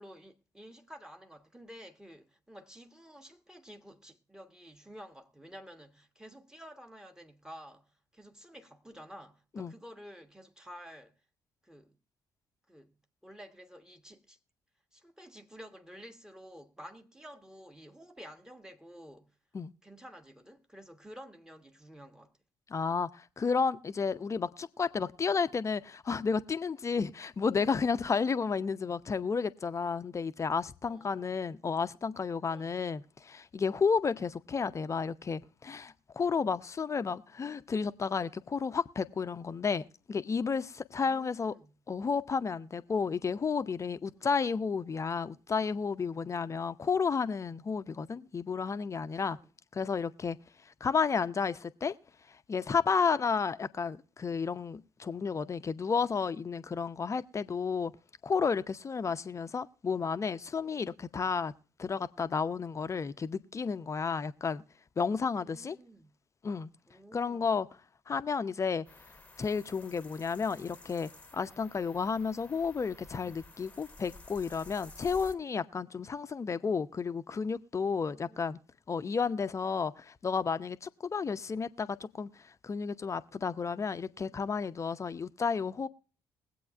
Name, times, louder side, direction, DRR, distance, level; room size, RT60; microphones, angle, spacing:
voice 1, 0.0-11.1 11.6-12.0 12.7-12.9 13.2-14.4 14.9-19.3 19.8-22.3 30.8-31.3 32.4-32.8 41.0-41.7 44.2-44.3 47.8-48.0 49.3-49.5 65.3-66.1 66.9-67.5 78.1-78.5 79.1-79.3, equal, 5° right, 1.4 m, -51 dB
voice 2, 22.7-41.5 41.9-49.4 49.7-50.4 50.8-51.9 52.5-57.9 58.2-61.5 61.8-64.6 65.0-65.8 66.4-66.7 67.1-67.7 68.1-68.8 69.4-78.6 78.9-82.3 82.6-85.9, left 5 dB, 30° left, 0.7 m, -32 dB
sound 1, 68.9-75.4, left 2 dB, 15° left, 1.1 m, -53 dB
21.5 x 8.5 x 2.4 m
figure-of-eight pair, 45°, 10 cm